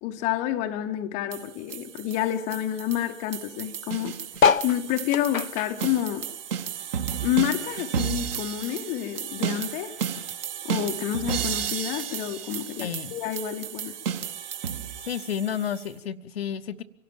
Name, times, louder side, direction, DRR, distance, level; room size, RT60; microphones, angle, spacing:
voice 1, 0.0-4.2 4.6-6.3 7.2-9.9 10.6-14.0, left 12 dB, 15° left, 1.0 m, -29 dB
sound 1, 1.3-15.9, right 8 dB, 45° right, 2.0 m, -33 dB
sound 2, 4.3-7.1 7.4-9.0 9.5-9.6 9.7-9.8 10.0-10.4 11.2-11.3, left 6 dB, 75° left, 0.8 m, -26 dB
voice 2, 12.8-13.2 15.0-16.8, left 9 dB, 45° left, 1.0 m, -31 dB
25.5 x 17.5 x 7.2 m
figure-of-eight pair, 120°, 41 cm